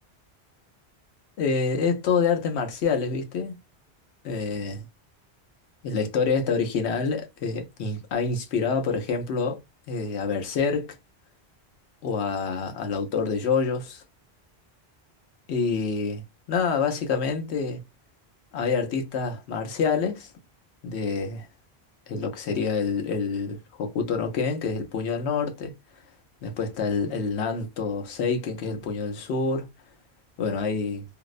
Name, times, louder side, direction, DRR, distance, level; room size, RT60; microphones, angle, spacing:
voice 1, 1.4-3.6 4.2-4.8 5.8-9.6 9.9-11.0 12.0-14.0 15.5-17.8 18.5-20.3 20.8-21.5 22.1-25.7 26.4-29.7 30.4-31.0, left 5 dB, 85° left, 1.0 m, -27 dB
2.7 x 2.0 x 2.3 m
omnidirectional pair, 1.1 m